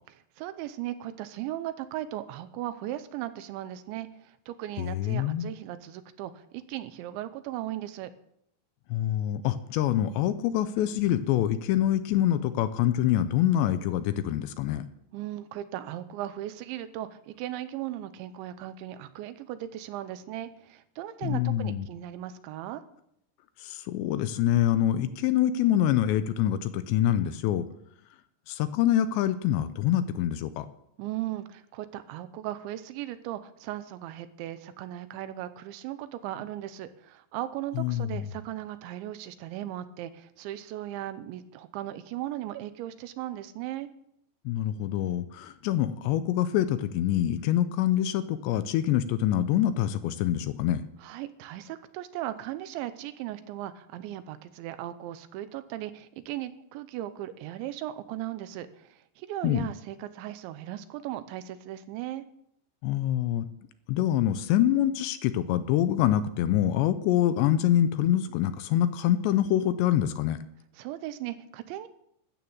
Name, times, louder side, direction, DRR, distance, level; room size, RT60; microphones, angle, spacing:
voice 1, 0.4-8.1 15.1-22.8 31.0-43.9 51.0-62.2 70.8-71.9, right 13 dB, 85° right, 12 dB, 3.0 m, -37 dB
voice 2, 4.8-5.5 8.9-14.8 21.2-21.9 23.6-27.7 28.5-30.7 37.8-38.3 44.5-50.8 59.4-59.7 62.8-63.5 63.9-70.4, left 11 dB, 80° left, 12 dB, 2.8 m, -25 dB
13.5 x 8.7 x 7.2 m, 0.75 s
omnidirectional pair, 5.3 m